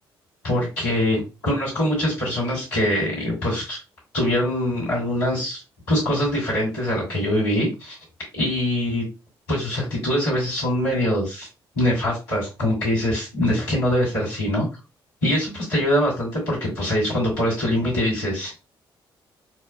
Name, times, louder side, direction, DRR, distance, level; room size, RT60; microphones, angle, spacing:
voice 1, 0.4-3.8 4.1-5.6 5.9-8.0 8.3-9.1 9.5-11.5 11.7-14.7 15.2-18.5, left 1 dB, 85° left, -7 dB, 2.4 m, -23 dB
6.4 x 2.3 x 2.2 m, 0.28 s
figure-of-eight pair, 40°, 12 cm